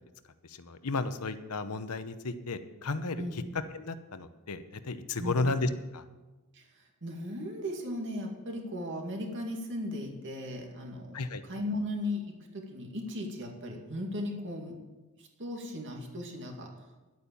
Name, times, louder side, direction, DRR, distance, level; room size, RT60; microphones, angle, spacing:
voice 1, 0.4-3.4 3.7-6.0 11.1-11.4, left 3 dB, 90° left, 11 dB, 0.9 m, -33 dB
voice 2, 7.0-11.2 11.5-14.7 15.2-16.7, left 1 dB, 55° right, 2 dB, 2.3 m, -37 dB
11.0 x 8.6 x 7.1 m, 1.1 s
head